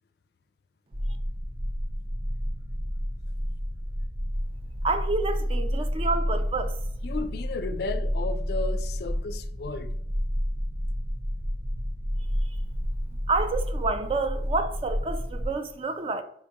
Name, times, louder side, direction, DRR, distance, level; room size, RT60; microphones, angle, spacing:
sound 1, 0.9-15.5, equal, 50° right, 0.7 m, -30 dB
voice 1, 4.8-6.8 13.3-16.2, right 3 dB, 30° right, 0.3 m, -28 dB
voice 2, 7.0-10.0, left 4 dB, 55° left, 0.3 m, -34 dB
4.5 x 3.5 x 2.8 m
head